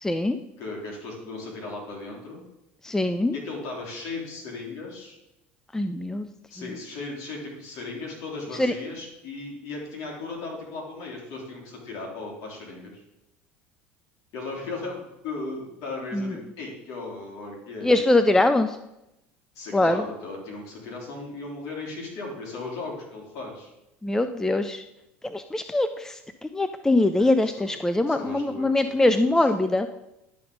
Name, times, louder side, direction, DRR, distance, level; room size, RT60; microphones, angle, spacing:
voice 1, 0.0-0.4 2.8-3.3 5.7-6.3 8.6-8.7 16.1-16.3 17.8-18.8 19.7-20.0 24.0-24.8 25.2-29.9, left 2 dB, 10° left, 10 dB, 0.5 m, -23 dB
voice 2, 0.6-2.4 3.3-5.2 6.5-13.0 14.3-18.2 19.5-23.7 27.2-27.7 28.1-29.5, left 3 dB, 60° left, -1 dB, 3.3 m, -37 dB
11.0 x 4.2 x 5.3 m, 0.89 s
hypercardioid pair, 80°, 6 cm